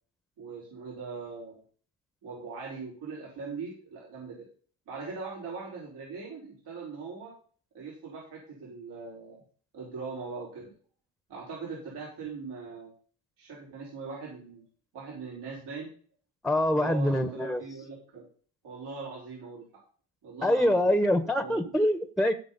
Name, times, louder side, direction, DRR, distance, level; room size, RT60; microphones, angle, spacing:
voice 1, 0.4-1.6 2.2-4.4 4.9-7.3 7.7-9.4 9.7-10.7 11.3-12.9 13.4-14.6 14.9-15.9 16.7-18.2 18.6-19.8 20.2-21.0 21.3-21.6, right 4 dB, 75° right, -5 dB, 5.1 m, -41 dB
voice 2, 16.4-17.6 20.4-22.3, left 1 dB, ahead, 8 dB, 1.2 m, -25 dB
16.5 x 6.1 x 4.1 m, 0.43 s
cardioid pair, 80°, 40 cm